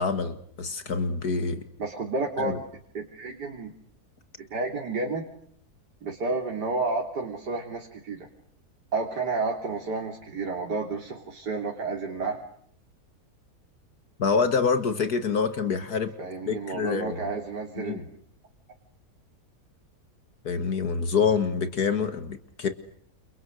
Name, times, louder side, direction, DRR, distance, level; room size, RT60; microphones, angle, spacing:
voice 1, 0.0-1.6 2.4-2.6 14.2-16.1 16.5-17.2 17.8-18.0 20.4-22.7, left 5 dB, 70° left, 10 dB, 2.2 m, -26 dB
voice 2, 1.8-2.6 2.9-3.7 4.4-5.3 6.0-8.3 8.9-12.4 16.2-18.0, right 3 dB, 90° right, 1 dB, 3.7 m, -31 dB
29.5 x 29.0 x 6.6 m, 0.67 s
omnidirectional pair, 1.7 m